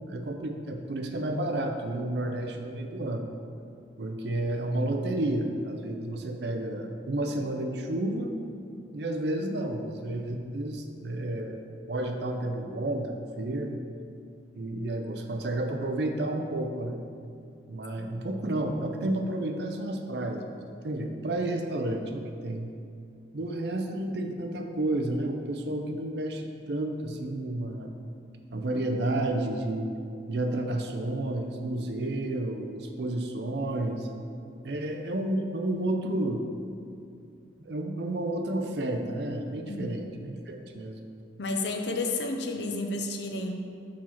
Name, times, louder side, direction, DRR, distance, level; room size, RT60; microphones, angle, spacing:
voice 1, 0.1-3.2 4.0-8.3 8.9-11.6 11.9-13.8 14.5-17.0 17.7-22.7 23.3-27.9 28.5-29.9 30.3-34.1 34.6-36.6 37.6-41.0, right 1 dB, 60° right, 4 dB, 0.5 m, -31 dB
voice 2, 41.4-43.5, left 2 dB, 65° left, 3 dB, 0.6 m, -31 dB
4.8 x 4.3 x 5.7 m, 2.4 s
head